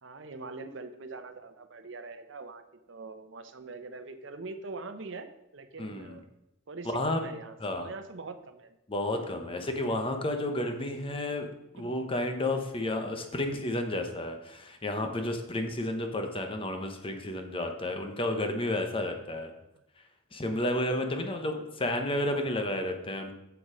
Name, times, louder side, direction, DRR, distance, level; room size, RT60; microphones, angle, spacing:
voice 1, 0.0-2.6 2.9-6.3 6.7-8.8 11.8-11.9 21.0-21.8, right 3 dB, 70° right, 9 dB, 0.8 m, -43 dB
voice 2, 5.8-6.2 6.8-7.2 7.6-7.9 8.9-11.5 11.7-19.5 20.3-23.3, left 1 dB, 30° left, 5 dB, 1.0 m, -31 dB
7.0 x 7.0 x 5.0 m, 0.88 s
head